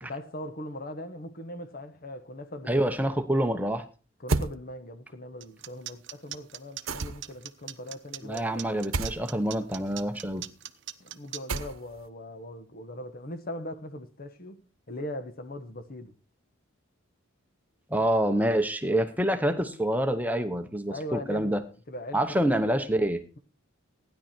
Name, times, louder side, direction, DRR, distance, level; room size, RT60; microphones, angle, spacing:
voice 1, 0.0-3.1 4.2-8.7 11.0-14.6 14.9-16.1 20.9-21.5 21.9-22.5, left 1 dB, 45° left, 1.2 m, -40 dB
voice 2, 2.7-3.9 8.2-10.5 17.9-21.6 22.1-23.2, right 1 dB, 10° right, 0.9 m, -26 dB
sound 1, 4.3-4.5 6.9-7.4 8.9-9.2 11.5-12.0, right 3 dB, 85° right, 1.0 m, -29 dB
sound 2, 5.4-11.6, right 13 dB, 60° right, 0.8 m, -40 dB
16.0 x 10.5 x 4.4 m
head